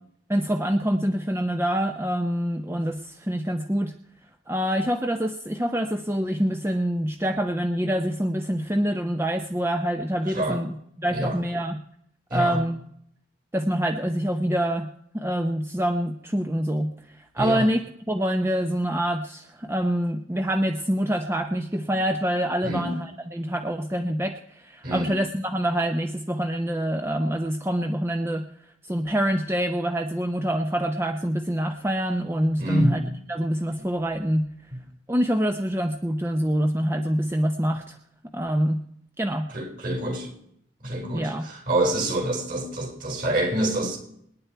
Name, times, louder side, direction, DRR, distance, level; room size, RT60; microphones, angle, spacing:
voice 1, 0.3-3.9 4.5-11.8 12.3-12.8 13.5-14.9 15.1-17.8 18.1-28.5 28.8-33.0 33.3-34.5 35.1-38.0 38.3-38.8 39.2-39.5 41.1-41.5, equal, 10° right, 0.7 m, -26 dB
voice 2, 22.6-23.0 24.8-25.1 32.6-33.0 33.8-33.9 34.7-34.8 39.5-40.3 40.8-44.0, right 1 dB, 45° right, 4.6 m, -27 dB
25.5 x 10.5 x 4.6 m
head